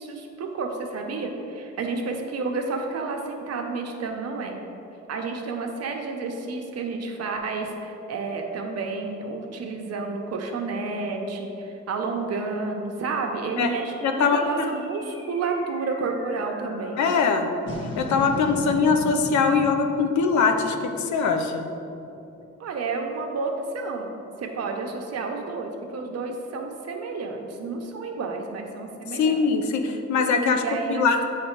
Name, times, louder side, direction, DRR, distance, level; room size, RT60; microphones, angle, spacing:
voice 1, 0.0-4.6 5.1-17.1 18.2-18.7 22.6-29.4 30.6-31.1, right 4 dB, 55° right, 3 dB, 0.8 m, -31 dB
sound 1, 13.6-22.2, left 1 dB, 40° left, 1.4 m, -39 dB
voice 2, 14.0-14.7 17.0-17.5 18.0-21.7 29.1-30.6 30.9-31.2, left 5 dB, 70° left, 5 dB, 0.6 m, -22 dB
7.7 x 3.3 x 4.5 m, 2.8 s
cardioid pair, 90°, 30 cm